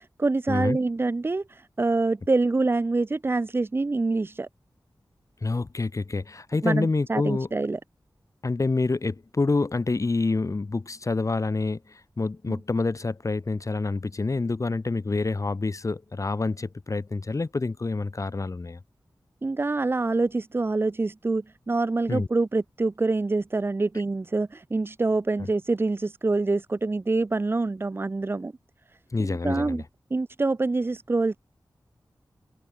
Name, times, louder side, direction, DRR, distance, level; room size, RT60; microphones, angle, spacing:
voice 1, 0.0-4.5 6.6-7.8 12.5-12.6 19.4-28.5 29.2-29.8 30.1-31.4, right 3 dB, 30° right, 0.4 m, -26 dB
voice 2, 5.4-7.5 8.4-18.8 22.1-22.3 29.1-29.8, left 3 dB, 45° left, 1.5 m, -27 dB
wide cardioid pair, 85°, 8 cm